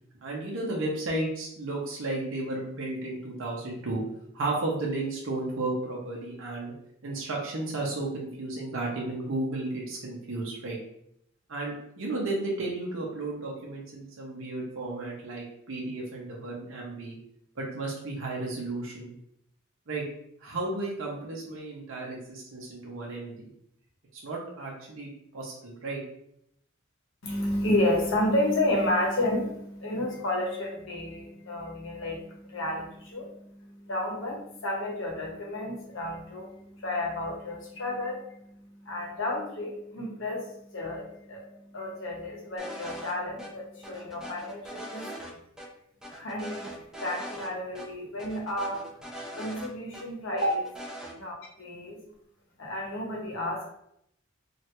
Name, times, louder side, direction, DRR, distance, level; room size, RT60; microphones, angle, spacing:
voice 1, 0.2-4.0 4.3-6.7 7.0-10.8 11.5-17.2 17.6-19.1 19.9-20.0 20.4-23.5 24.1-26.0, right 2 dB, 70° right, -3 dB, 0.7 m, -33 dB
voice 2, 27.2-41.4 41.7-45.1 46.1-46.7 47.0-48.8 49.4-50.7 51.1-52.0 52.6-53.7, left 1 dB, 65° left, -1 dB, 0.9 m, -31 dB
sound 1, 42.6-43.1 43.4-43.5 43.8-45.3 45.6-45.7 46.0-47.5 47.8-47.9 48.2-50.0 50.4-51.1, equal, 5° right, 0.4 m, -41 dB
3.2 x 2.4 x 2.9 m, 0.73 s
head